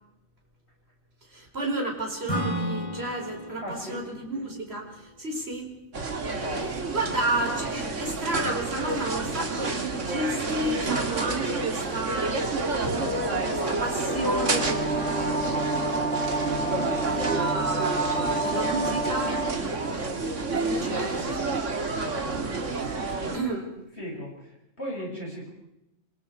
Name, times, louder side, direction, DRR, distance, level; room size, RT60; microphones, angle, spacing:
voice 1, 1.3-5.7 6.9-12.5 12.9-15.5 17.1-22.1 22.6-23.7, right 2 dB, 55° right, 1 dB, 4.7 m, -32 dB
Acoustic guitar / Strum, 2.3-5.9, equal, 25° left, 6.6 m, -34 dB
voice 2, 3.6-4.1 4.3-4.4 6.4-6.7 24.0-25.5, equal, 55° left, -1 dB, 7.2 m, -37 dB
sound 1, 5.9-23.4, right 3 dB, 75° right, 2.3 m, -30 dB
sound 2, 12.8-19.5, right 2 dB, 10° left, 6.3 m, -29 dB
27.0 x 23.5 x 4.7 m, 0.86 s
omnidirectional pair, 1.3 m